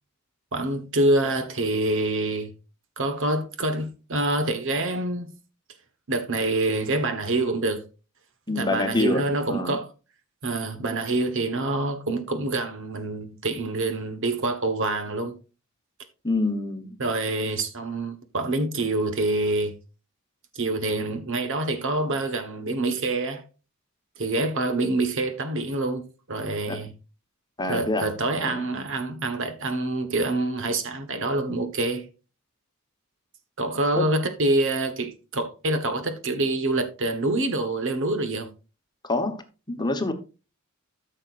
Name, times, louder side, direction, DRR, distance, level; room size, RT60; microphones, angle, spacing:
voice 1, 0.5-2.5 3.0-5.4 6.1-7.8 8.5-9.9 10.4-15.4 17.0-19.8 20.5-23.4 24.2-26.9 27.7-32.1 33.6-38.5, right 2 dB, 65° right, 1.3 m, -26 dB
voice 2, 8.5-9.8 16.2-17.0 26.7-26.8 27.6-28.1 28.3-28.6 34.0-34.1 39.0-40.1, left 2 dB, 20° left, 1.1 m, -27 dB
13.5 x 6.7 x 2.5 m
head